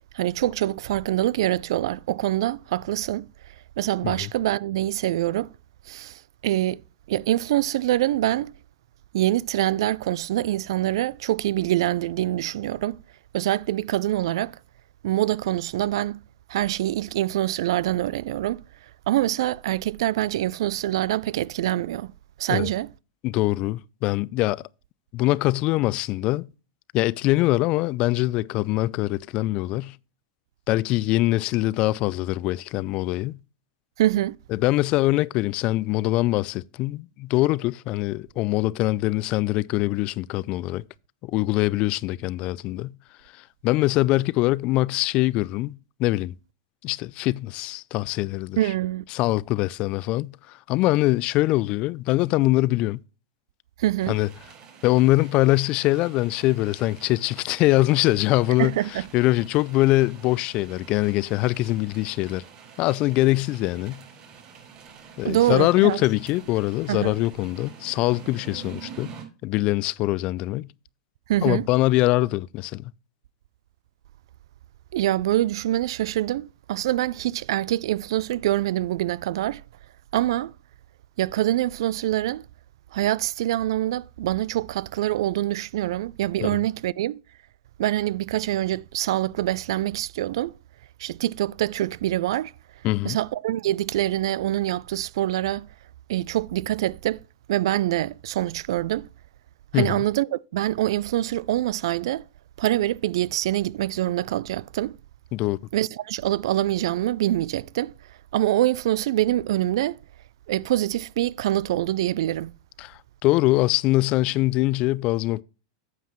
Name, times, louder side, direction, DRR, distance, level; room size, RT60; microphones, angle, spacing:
voice 1, 0.1-3.3 3.8-5.5 5.9-6.8 7.1-8.5 9.1-13.0 13.3-14.6 15.0-16.2 16.5-18.6 19.1-22.1 22.4-22.9 34.0-34.4 48.6-49.0 53.8-54.2 58.6-59.0 65.2-66.0 66.9-67.1 71.3-71.7 74.9-79.6 80.1-80.5 81.2-82.4 82.9-87.2 87.8-90.5 91.0-92.5 93.0-95.7 96.1-97.2 97.5-99.1 99.7-102.2 102.6-105.0 105.7-107.9 108.3-110.0 110.5-112.5, right 14 dB, 70° right, 0.3 m, -25 dB
voice 2, 23.2-24.6 25.1-26.5 26.9-30.0 30.7-33.4 34.5-40.8 41.2-42.9 43.6-46.3 46.8-48.6 49.1-53.0 54.1-54.3 54.8-58.8 59.1-62.4 62.8-64.0 65.2-69.1 69.4-70.7 71.4-72.9 86.4-86.5 92.8-93.2 99.7-100.0 105.3-105.6 112.8-115.4, left 18 dB, 45° left, 0.3 m, -23 dB
sound 1, 54.0-69.2, right 6 dB, 40° right, 4.5 m, -46 dB
9.1 x 7.4 x 3.1 m
hypercardioid pair, 115°, 3 cm